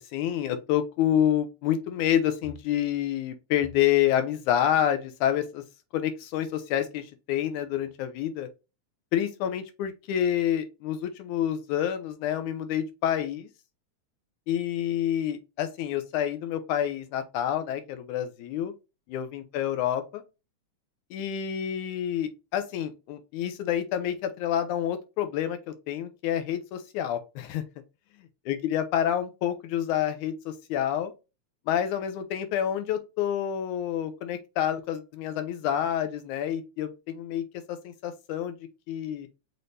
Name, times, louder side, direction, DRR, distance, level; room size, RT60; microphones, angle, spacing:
voice 1, 0.1-5.6 5.9-8.5 9.1-13.5 14.5-18.7 19.1-20.2 21.1-27.6 28.5-31.1 31.7-38.6 38.9-39.3, left 10 dB, 90° left, 9 dB, 2.2 m, -28 dB
6.0 x 2.7 x 3.3 m, 0.27 s
omnidirectional pair, 3.4 m